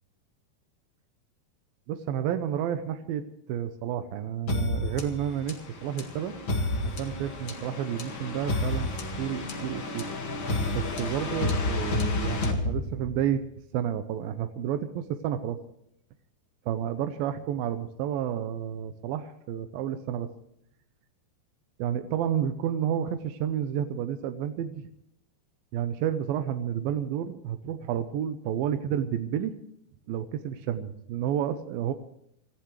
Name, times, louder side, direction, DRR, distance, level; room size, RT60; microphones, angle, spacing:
voice 1, 1.9-3.2 3.5-6.3 6.8-8.9 9.2-10.1 10.7-13.4 13.7-15.6 16.7-20.3 21.8-24.9 25.7-29.5 30.1-31.9, right 9 dB, 80° right, 8 dB, 2.1 m, -30 dB
sound 1, 4.5-13.3, left 2 dB, 55° left, 1.3 m, -30 dB
26.5 x 15.0 x 3.2 m, 0.73 s
omnidirectional pair, 5.1 m